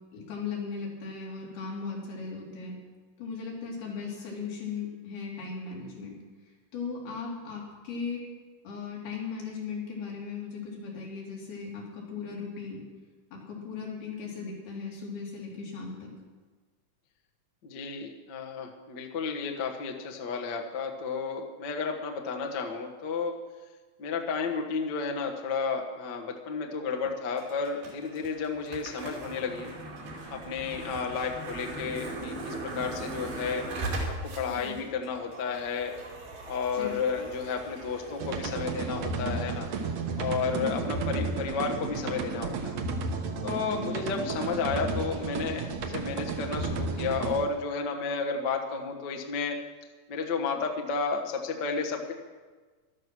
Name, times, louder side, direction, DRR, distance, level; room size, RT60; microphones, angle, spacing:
voice 1, 0.1-2.7 3.2-6.1 6.7-8.2 8.6-12.8 13.3-15.9 34.6-34.8 36.7-37.0 40.6-40.7 43.7-43.9, left 5 dB, 85° left, -3 dB, 5.3 m, -37 dB
voice 2, 17.6-23.3 24.0-29.7 30.3-33.6 34.1-35.9 36.5-39.7 40.2-42.7 43.4-49.6 50.1-52.1, left 5 dB, 65° left, 2 dB, 1.0 m, -32 dB
sound 1, 27.3-44.4, right 2 dB, 80° right, 4.5 m, -41 dB
sound 2, 38.2-47.4, right 4 dB, 60° right, 1.8 m, -33 dB
13.5 x 12.5 x 6.2 m, 1.4 s
omnidirectional pair, 4.3 m